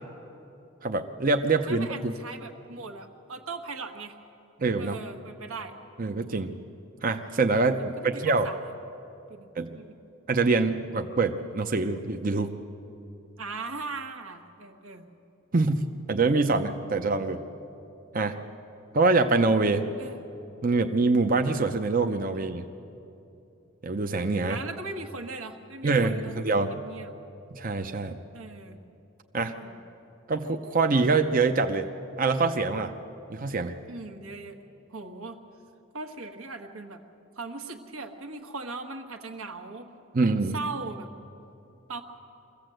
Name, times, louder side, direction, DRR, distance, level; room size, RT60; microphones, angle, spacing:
voice 1, 0.8-2.1 4.6-5.0 6.0-6.6 7.0-8.5 9.6-9.8 10.3-12.6 15.5-17.4 18.1-18.4 18.9-19.9 20.6-22.7 23.8-24.6 25.8-26.7 27.5-28.2 29.3-29.5 30.3-31.9 32.2-32.9 33.3-33.8 40.1-40.6, right 3 dB, 40° right, 6 dB, 0.7 m, -25 dB
voice 2, 1.7-4.1 4.8-5.7 7.8-8.7 9.3-9.9 13.4-15.1 20.0-20.2 24.5-26.3 26.6-27.1 28.3-28.8 29.6-29.8 33.9-34.6 34.9-35.4 35.9-37.0 37.3-39.9 40.5-41.1 41.9-42.0, right 3 dB, 75° right, 5 dB, 1.5 m, -39 dB
24.0 x 16.0 x 7.8 m, 2.8 s
head